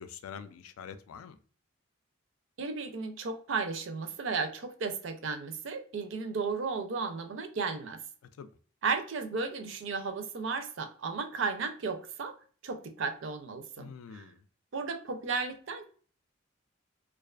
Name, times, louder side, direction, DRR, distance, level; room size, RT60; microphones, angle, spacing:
voice 1, 0.0-1.4 8.4-8.5 13.8-14.4, left 7 dB, 85° left, 0.3 m, -45 dB
voice 2, 2.6-8.0 8.8-12.4 12.6-14.3 14.7-15.9, right 4 dB, 65° right, 0.4 m, -34 dB
2.4 x 2.3 x 2.3 m
head